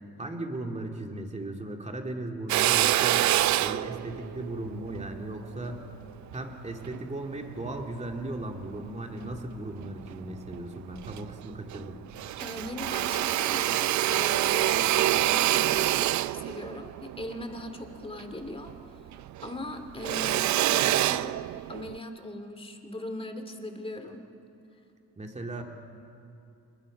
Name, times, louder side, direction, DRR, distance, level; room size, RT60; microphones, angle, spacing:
voice 1, 0.2-3.3 3.6-5.8 6.3-12.0 25.2-25.6, right 2 dB, 20° right, 2 dB, 2.7 m, -37 dB
Drill, 2.5-7.0 7.6-8.8 9.2-10.2 10.5-10.6 10.9-11.9 12.1-18.8 19.1-22.0, right 14 dB, 70° right, 0.5 m, -27 dB
voice 2, 12.4-19.0 19.4-21.4 21.7-24.2, left 1 dB, 20° left, 6 dB, 2.4 m, -40 dB
27.5 x 21.0 x 5.3 m, 2.6 s
cardioid pair, 90°, 30 cm